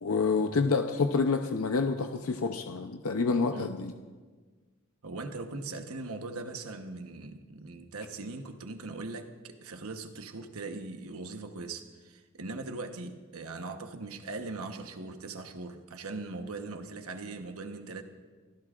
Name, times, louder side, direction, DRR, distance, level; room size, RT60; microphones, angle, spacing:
voice 1, 0.0-3.9, left 4 dB, 75° left, 0.7 m, -28 dB
voice 2, 3.5-3.8 5.0-18.0, right 3 dB, 80° right, 1.1 m, -40 dB
29.5 x 15.0 x 2.5 m
head